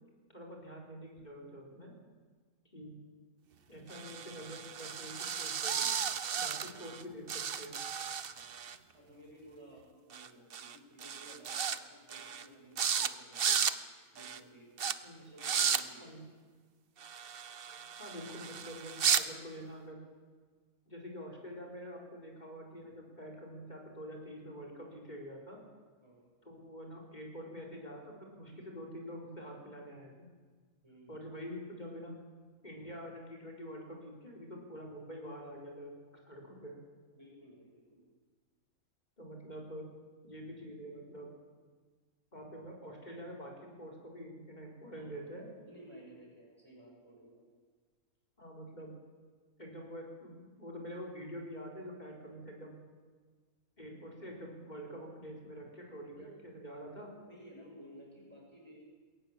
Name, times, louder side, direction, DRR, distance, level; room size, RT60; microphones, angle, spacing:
voice 1, 0.3-1.9 2.7-3.0 3.7-5.9 6.4-7.8 15.0-15.2 16.0-16.3 18.0-20.0 20.9-25.6 26.4-30.3 31.1-32.1 32.6-35.9 36.2-36.8 39.2-39.9 40.2-41.3 42.3-45.5 48.4-48.9 49.6-52.7 53.8-57.1, equal, 30° left, 0 dB, 4.4 m, -46 dB
sound 1, 3.9-7.0 7.3-8.8 10.1-10.3 10.5-10.8 11.0-11.8 12.1-12.5 12.8-13.1 13.3-13.8 14.2-14.4 14.8-14.9 15.4-15.8 17.0-19.2, right 7 dB, 45° right, 0.9 m, -34 dB
voice 2, 8.9-13.6 14.1-14.7 15.1-16.2 26.0-26.3 30.8-31.3 37.1-38.0 44.9-45.3 45.6-47.4 56.1-56.3 56.9-58.8, right 1 dB, 15° right, -3 dB, 7.1 m, -56 dB
21.5 x 17.5 x 7.3 m, 1.5 s
omnidirectional pair, 1.6 m